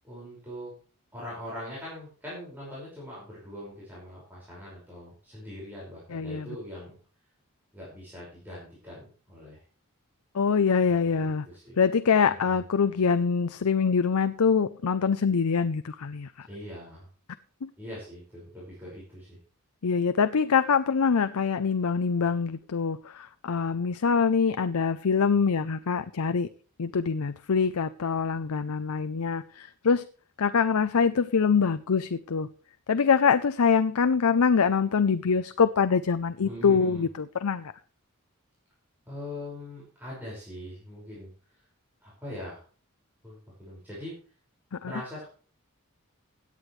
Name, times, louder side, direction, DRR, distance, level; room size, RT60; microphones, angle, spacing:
voice 1, 0.0-0.7 1.1-6.9 7.7-9.6 10.9-11.8 12.3-12.6 16.5-17.1 17.8-19.4 36.4-37.1 39.1-41.3 42.0-42.6 43.2-44.2 44.8-45.3, left 1 dB, 10° right, 5.5 m, -42 dB
voice 2, 6.1-6.5 10.3-11.5 11.8-16.5 17.6-17.7 19.8-26.5 26.8-30.0 30.4-32.5 32.9-37.7 44.8-44.9, left 5 dB, 85° left, 0.6 m, -24 dB
17.0 x 9.9 x 3.2 m
head